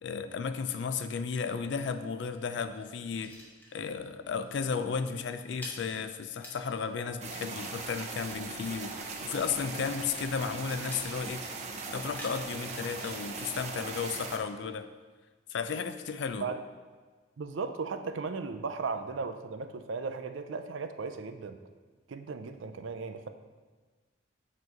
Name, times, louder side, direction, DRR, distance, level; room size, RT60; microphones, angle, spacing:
voice 1, 0.0-3.3 3.7-11.4 11.9-14.9 15.5-16.5, left 5 dB, 65° left, 10 dB, 0.4 m, -34 dB
sound 1, 1.7-4.2 4.4-4.7 5.0-14.4, equal, 10° left, 0.9 m, -52 dB
sound 2, 7.2-14.4, right 4 dB, 35° right, 0.6 m, -39 dB
voice 2, 17.4-21.6 22.1-23.3, right 4 dB, 80° right, 9 dB, 0.4 m, -36 dB
7.6 x 3.1 x 4.6 m, 1.4 s
head